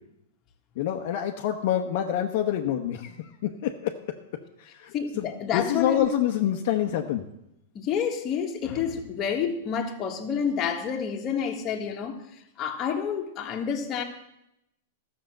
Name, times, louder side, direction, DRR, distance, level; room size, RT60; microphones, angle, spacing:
voice 1, 0.8-3.9 4.6-7.3, left 10 dB, 55° left, 3 dB, 0.9 m, -27 dB
voice 2, 4.9-6.1 7.7-12.2 12.6-14.0, left 7 dB, 25° left, 2 dB, 1.6 m, -29 dB
13.0 x 6.5 x 7.8 m, 0.84 s
hypercardioid pair, 150°, 0 cm